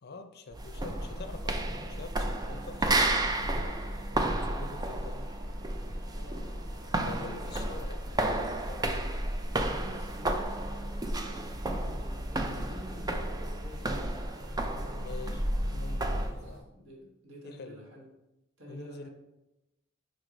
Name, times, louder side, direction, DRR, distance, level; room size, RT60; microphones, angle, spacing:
voice 1, 0.0-5.3 7.0-9.1 15.0-16.7 17.4-17.9 18.7-19.1, left 4 dB, 50° left, 8 dB, 0.6 m, -46 dB
sound 1, 0.5-16.3, right 1 dB, 20° right, 0.4 m, -32 dB
sound 2, 0.7-16.6, equal, 45° right, 1.1 m, -50 dB
voice 2, 6.1-6.5 7.2-7.7 9.6-14.3 14.7-15.0 16.1-18.1 18.6-19.1, equal, 65° right, -2 dB, 1.6 m, -49 dB
5.2 x 4.8 x 3.8 m, 0.91 s
head